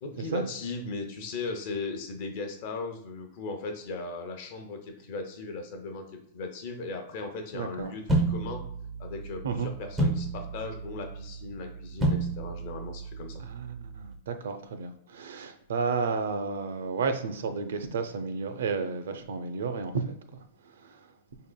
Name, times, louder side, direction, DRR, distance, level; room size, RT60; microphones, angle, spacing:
voice 1, 0.0-8.6 9.0-13.4, left 3 dB, 40° left, 0.7 m, -37 dB
voice 2, 7.5-7.9 9.4-9.7 13.4-20.5 20.8-21.0, right 5 dB, 85° right, 0.6 m, -32 dB
sound 1, 8.1-14.1, right 2 dB, 5° right, 0.5 m, -31 dB
5.6 x 3.7 x 2.2 m
supercardioid pair, 180°, 0 cm